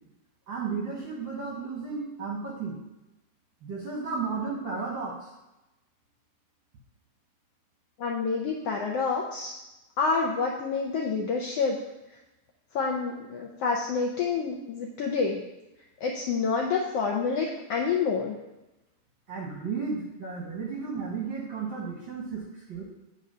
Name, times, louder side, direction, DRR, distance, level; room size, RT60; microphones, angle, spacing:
voice 1, 0.5-2.8 3.6-5.3 19.3-22.8, right 5 dB, 55° right, -3 dB, 1.4 m, -33 dB
voice 2, 8.0-9.5 10.0-11.8 12.7-15.4 16.0-18.4, left 5 dB, 75° left, -1 dB, 1.4 m, -28 dB
9.2 x 3.8 x 5.4 m, 0.97 s
omnidirectional pair, 3.6 m